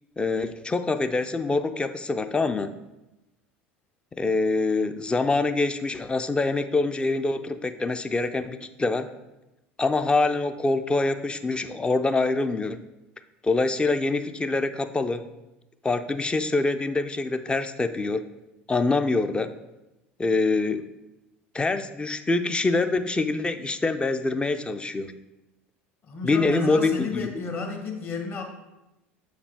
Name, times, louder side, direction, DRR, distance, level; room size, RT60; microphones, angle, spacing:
voice 1, 0.2-2.7 4.1-9.1 9.8-12.8 13.4-15.3 15.8-18.2 18.7-19.5 20.2-20.8 21.5-25.1 26.2-27.3, left 3 dB, 15° left, 9 dB, 0.4 m, -25 dB
voice 2, 26.0-28.4, left 4 dB, 35° left, 3 dB, 1.2 m, -32 dB
6.8 x 4.7 x 3.5 m, 0.98 s
figure-of-eight pair, 70°, 6 cm